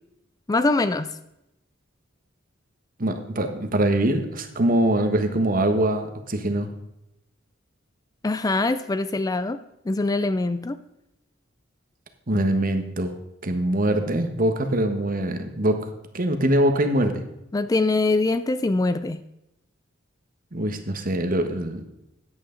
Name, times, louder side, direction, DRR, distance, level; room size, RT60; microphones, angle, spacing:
voice 1, 0.5-1.1 8.2-9.6 9.9-10.8 17.5-19.2, left 2 dB, 20° left, 12 dB, 0.4 m, -23 dB
voice 2, 3.0-6.7 12.3-13.1 13.4-15.8 16.1-17.2 20.5-21.8, right 1 dB, 45° right, 7 dB, 1.3 m, -23 dB
14.0 x 9.5 x 3.9 m, 0.87 s
head